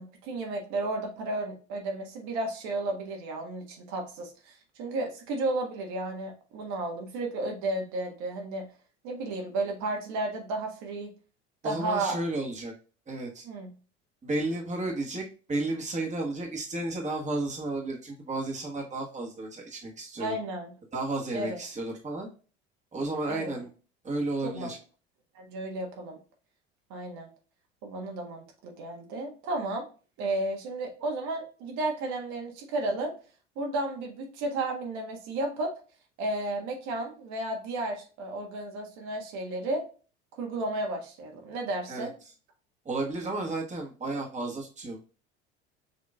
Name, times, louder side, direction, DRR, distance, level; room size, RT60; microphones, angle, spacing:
voice 1, 0.0-8.6 9.0-11.1 11.6-12.2 13.4-13.7 20.2-20.7 21.3-21.6 23.3-23.6 24.4-24.7 25.3-26.2 26.9-27.3 27.8-29.8 30.2-33.1 33.5-35.7 36.2-39.8 40.4-42.1, right 2 dB, 55° right, 2 dB, 1.5 m, -33 dB
voice 2, 11.6-12.7 13.1-13.4 14.2-20.3 20.9-22.3 22.9-23.7 24.0-24.8 41.9-42.1 42.8-45.0, right 2 dB, 20° right, 0 dB, 1.3 m, -32 dB
6.5 x 2.9 x 2.4 m, 0.35 s
figure-of-eight pair, 65°, 34 cm